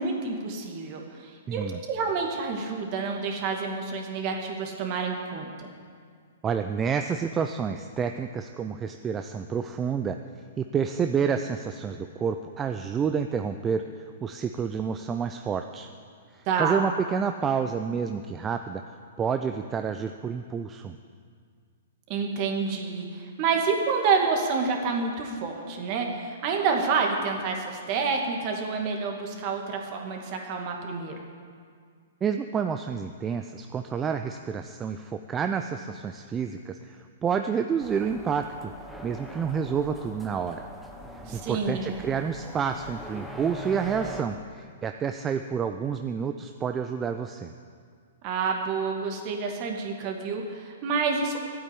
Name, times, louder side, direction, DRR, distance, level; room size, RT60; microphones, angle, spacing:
voice 1, 0.0-5.7 16.5-16.8 22.1-31.1 41.3-41.9 48.2-51.4, right 5 dB, 40° right, 2 dB, 2.3 m, -28 dB
voice 2, 1.5-1.8 6.4-10.2 10.6-15.9 16.3-20.9 32.2-38.7 39.0-40.7 41.1-47.5, right 6 dB, 20° right, 7 dB, 0.5 m, -29 dB
sound 1, 37.8-44.2, right 1 dB, ahead, 1.2 m, -42 dB
13.0 x 8.8 x 8.5 m, 2.1 s
hypercardioid pair, 130°, 0 cm